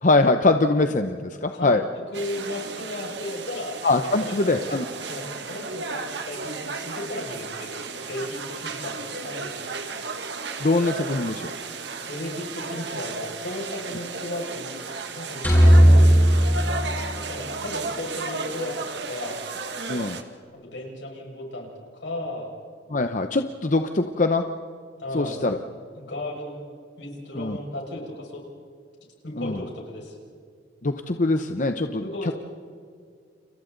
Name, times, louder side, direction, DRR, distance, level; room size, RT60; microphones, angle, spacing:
voice 1, 0.0-1.8 3.8-4.8 10.6-11.5 19.9-20.2 22.9-24.4 25.1-25.6 27.4-27.6 29.4-29.6 30.8-32.0, left 2 dB, 45° left, 7 dB, 0.8 m, -22 dB
voice 2, 1.5-4.8 5.1-9.9 12.1-14.7 15.1-16.3 17.1-18.8 19.0-19.4 20.5-22.6 25.0-25.6 26.0-26.6 27.0-28.4 29.2-30.2 32.0-32.3, left 1 dB, 80° left, -1 dB, 6.0 m, -35 dB
sound 1, 2.1-20.2, right 4 dB, 70° right, 1.8 m, -34 dB
sound 2, 15.4-17.7, equal, 10° left, 7.5 m, -16 dB
30.0 x 29.5 x 4.0 m, 2.2 s
head